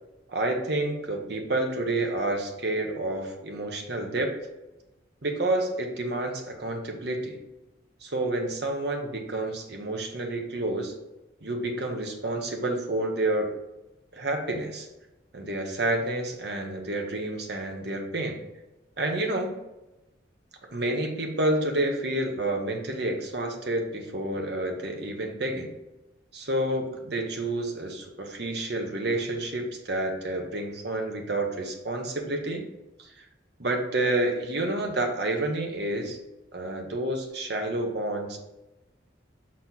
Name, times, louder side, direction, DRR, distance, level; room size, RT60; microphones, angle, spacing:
voice 1, 0.3-4.3 5.2-7.4 8.0-10.9 11.4-13.6 14.1-14.9 15.3-18.4 19.0-19.5 20.7-25.7 26.3-32.6 33.6-36.2 36.5-38.4, right 1 dB, 55° right, 3 dB, 1.0 m, -29 dB
5.8 x 4.2 x 4.1 m, 1.0 s
head